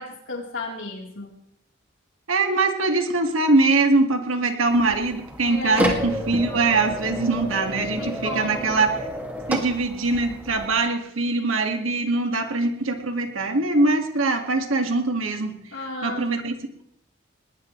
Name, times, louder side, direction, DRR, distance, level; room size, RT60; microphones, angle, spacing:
voice 1, 0.0-1.3 5.5-6.0 7.8-8.9 15.7-16.3, left 2 dB, 75° left, -1 dB, 4.0 m, -33 dB
voice 2, 2.3-9.0 9.5-15.6 16.0-16.6, right 3 dB, 90° right, 4 dB, 2.2 m, -22 dB
sound 1, 4.7-10.7, equal, 10° right, 2.3 m, -30 dB
20.5 x 19.5 x 3.3 m, 0.73 s
head